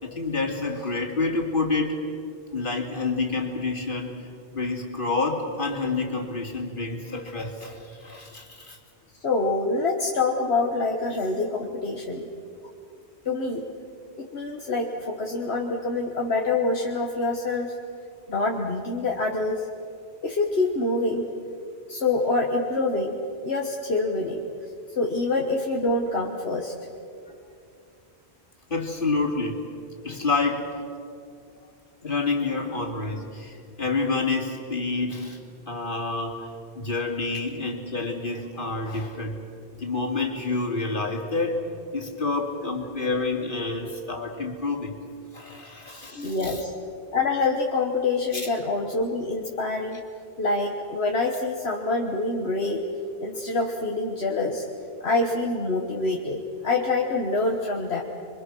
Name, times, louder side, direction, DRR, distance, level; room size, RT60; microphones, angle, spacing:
voice 1, 0.0-2.0 2.5-4.2 4.5-8.8 28.7-29.6 30.0-30.8 32.0-35.4 35.7-36.5 36.7-39.4 39.8-41.7 41.9-44.9 45.3-46.6 48.3-48.5, left 3 dB, 50° left, 1 dB, 2.9 m, -28 dB
voice 2, 9.2-12.3 13.2-13.7 14.2-17.7 18.3-19.7 20.2-21.3 21.9-23.2 23.4-24.4 25.0-26.7 46.1-46.7 47.1-50.0 50.4-52.9 53.2-54.7 55.0-58.0, left 3 dB, 70° left, 1 dB, 1.7 m, -26 dB
27.5 x 23.5 x 6.3 m, 2.5 s
omnidirectional pair, 1.1 m